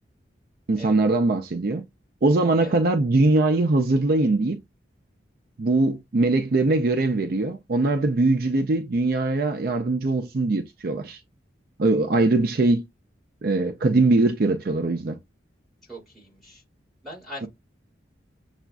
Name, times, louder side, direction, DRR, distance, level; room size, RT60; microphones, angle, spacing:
voice 1, 0.7-1.8 2.2-4.6 5.6-11.2 11.8-12.8 13.4-15.2, right 2 dB, 50° right, 0.5 m, -21 dB
voice 2, 15.9-16.6 17.0-17.5, equal, ahead, 3.0 m, -40 dB
6.9 x 2.4 x 2.2 m
head